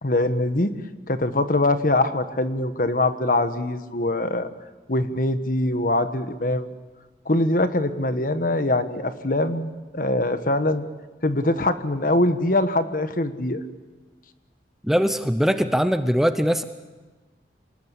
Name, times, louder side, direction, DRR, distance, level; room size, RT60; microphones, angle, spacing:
voice 1, 0.0-0.7 1.1-4.5 4.9-6.6 7.2-10.8 11.2-13.6, left 1 dB, 50° left, 10 dB, 1.4 m, -23 dB
voice 2, 14.8-16.6, equal, ahead, 9 dB, 0.7 m, -21 dB
26.5 x 20.0 x 8.4 m, 1.3 s
head